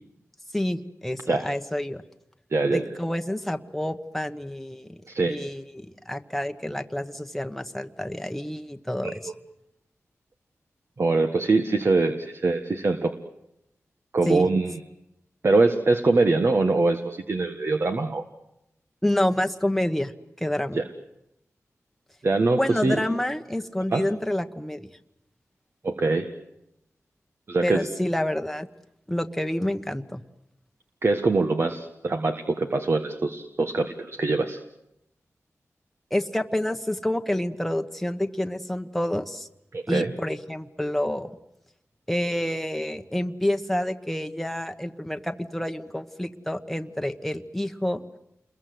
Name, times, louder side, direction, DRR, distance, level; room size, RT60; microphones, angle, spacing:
voice 1, 0.5-2.0 2.7-9.3 14.3-14.5 19.0-20.1 20.4-20.8 22.6-24.9 27.6-28.7 29.1-30.2 36.1-39.5 39.9-41.3 42.1-48.0, left 1 dB, 5° left, 6 dB, 1.3 m, -28 dB
voice 2, 2.5-2.8 5.1-5.4 9.0-9.1 11.0-13.1 14.1-14.7 15.4-18.2 20.7-20.8 22.2-23.0 23.9-24.0 25.8-26.3 27.5-27.9 31.0-34.6 39.7-40.1, right 3 dB, 50° right, 6 dB, 1.6 m, -23 dB
29.0 x 22.0 x 7.9 m, 0.83 s
wide cardioid pair, 90°, 5 cm